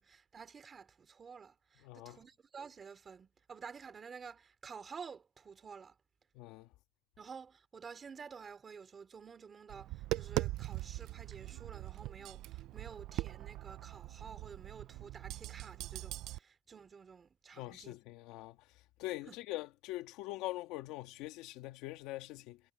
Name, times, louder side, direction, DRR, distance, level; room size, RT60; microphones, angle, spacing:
voice 1, 0.0-6.0 7.2-18.0 19.3-19.4, right 6 dB, 20° right, 4.8 m, -51 dB
voice 2, 1.8-2.2 6.3-6.7 17.5-18.6 19.0-22.6, left 17 dB, 70° left, 2.0 m, -43 dB
Tap, 9.7-16.4, right 17 dB, 55° right, 0.5 m, -41 dB
cardioid pair, 170°, 0 cm